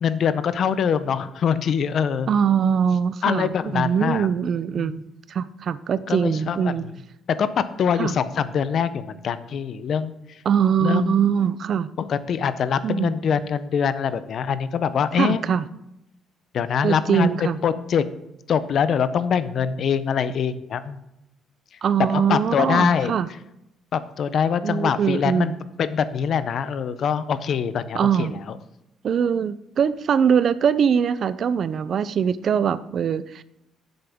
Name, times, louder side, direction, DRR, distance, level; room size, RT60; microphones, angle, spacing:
voice 1, 0.0-2.3 3.2-4.3 4.8-5.0 6.1-6.9 7.4-10.1 10.8-11.2 12.0-15.4 16.5-18.0 18.5-21.0 22.1-23.1 23.9-25.5 25.8-28.6, left 7 dB, 45° left, 14 dB, 0.5 m, -24 dB
voice 2, 2.3-5.0 5.3-6.8 8.0-8.1 10.5-11.9 12.8-13.1 15.2-15.6 16.8-17.6 21.8-23.3 24.6-25.6 27.9-28.3 29.0-33.4, right 7 dB, 45° right, 16 dB, 0.3 m, -22 dB
11.0 x 7.9 x 3.5 m, 0.87 s
cardioid pair, 155°, 0 cm